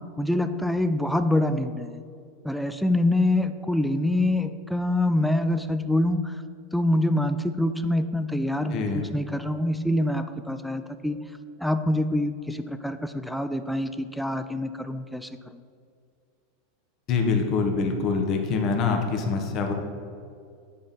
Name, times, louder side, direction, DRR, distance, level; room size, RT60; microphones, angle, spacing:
voice 1, 0.2-2.0 2.4-6.3 6.7-11.2 11.6-15.3, left 1 dB, ahead, 9 dB, 0.4 m, -25 dB
voice 2, 8.7-9.0 17.1-19.7, left 4 dB, 45° left, 4 dB, 1.1 m, -25 dB
8.6 x 3.5 x 5.7 m, 2.3 s
hypercardioid pair, 100°, 0 cm